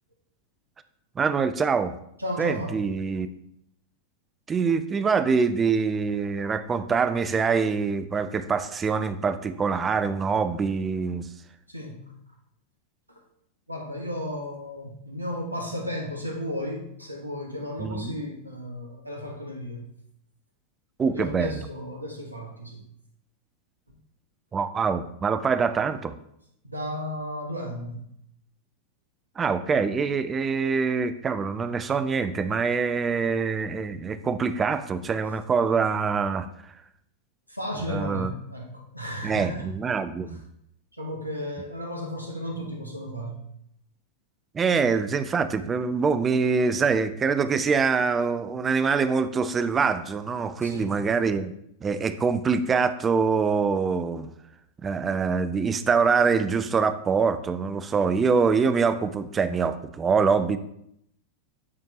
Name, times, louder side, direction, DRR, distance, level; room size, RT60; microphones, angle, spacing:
voice 1, 1.2-1.9 2.4-3.3 4.5-11.3 17.8-18.1 21.0-21.5 24.5-26.1 29.4-36.5 37.9-38.3 39.2-40.4 44.5-51.5 51.8-54.3 54.8-60.6, right 5 dB, 20° right, 12 dB, 0.4 m, -24 dB
voice 2, 2.2-2.8 11.7-12.1 13.1-13.2 13.7-19.9 21.0-22.9 23.9-24.0 26.6-28.0 37.5-39.7 40.3-40.4 40.9-43.4 50.6-51.0, equal, 85° right, 0 dB, 1.2 m, -34 dB
8.6 x 4.4 x 2.8 m, 0.74 s
figure-of-eight pair, 90°, 0 cm